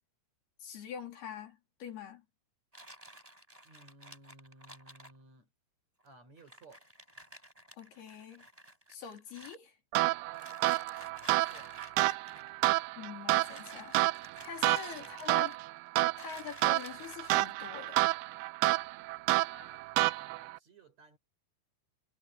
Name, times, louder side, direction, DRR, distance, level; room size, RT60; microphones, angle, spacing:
voice 1, 0.6-2.2 7.8-8.4 8.9-9.8 13.0-14.0 14.4-15.6 16.2-18.1, left 8 dB, 70° left, 5.6 m, -44 dB
sound 1, 2.7-5.2 6.1-6.2 6.4-9.6 10.3-12.5 13.3-15.8 16.2-17.5, right 1 dB, 10° right, 5.3 m, -53 dB
voice 2, 3.6-5.5 6.0-6.9 11.4-11.8 15.0-15.1 19.4-19.9 20.1-21.2, right 2 dB, 40° right, 7.3 m, -57 dB
sound 2, 9.9-20.6, right 20 dB, 85° right, 2.0 m, -30 dB
omnidirectional pair, 4.6 m